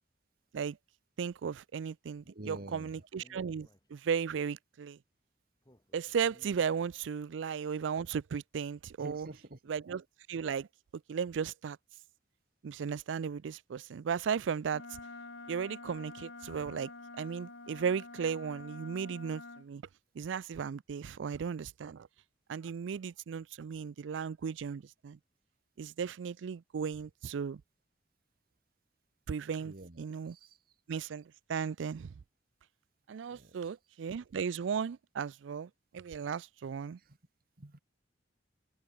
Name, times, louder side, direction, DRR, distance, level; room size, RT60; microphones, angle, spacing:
voice 1, 1.2-5.0 5.9-9.3 9.7-10.0 10.3-10.7 11.1-11.8 12.6-14.8 15.5-16.9 17.2-19.8 20.2-22.1 22.5-25.2 25.8-27.6 29.3-30.4 30.9-32.1 33.1-37.0, right 6 dB, 90° right, 0.4 m, -36 dB
voice 2, 2.2-3.1 9.0-9.6 29.6-30.6 33.3-33.6 37.0-37.2 37.6-37.8, right 2 dB, 55° right, 1.5 m, -48 dB
Speech, 2.5-4.3 5.6-7.4, equal, 20° left, 4.1 m, -64 dB
Wind instrument woodwind instrument, 14.7-19.7, left 3 dB, 75° left, 3.2 m, -48 dB
open air
head